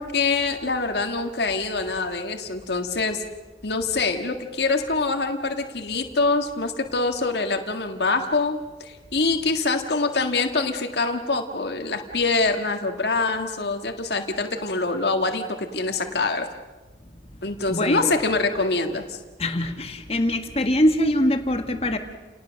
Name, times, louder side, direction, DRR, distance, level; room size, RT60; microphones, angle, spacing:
voice 1, 0.0-3.2 3.6-16.5 17.4-19.2, left 3 dB, 65° left, 5 dB, 1.8 m, -25 dB
voice 2, 17.7-18.1 19.4-22.0, left 1 dB, 35° left, 6 dB, 1.8 m, -23 dB
29.5 x 19.0 x 6.5 m, 1.2 s
head